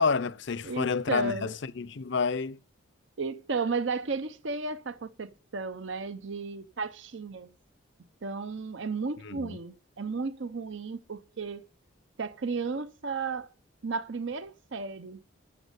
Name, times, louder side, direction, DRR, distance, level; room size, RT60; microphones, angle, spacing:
voice 1, 0.0-2.6 9.2-9.6, left 5 dB, 60° left, 0.5 m, -29 dB
voice 2, 0.7-1.5 3.2-7.5 8.2-11.7 12.2-13.5 13.8-15.2, right 4 dB, 65° right, 0.7 m, -34 dB
13.0 x 7.3 x 6.7 m
head